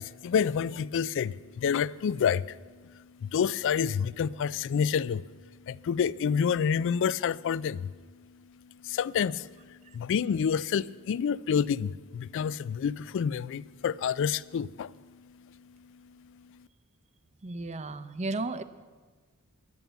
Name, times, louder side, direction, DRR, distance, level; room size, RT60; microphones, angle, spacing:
voice 1, 0.0-16.7, left 7 dB, 60° left, 0.3 m, -29 dB
voice 2, 17.4-18.6, right 2 dB, 30° right, 0.6 m, -33 dB
11.0 x 10.5 x 8.0 m
head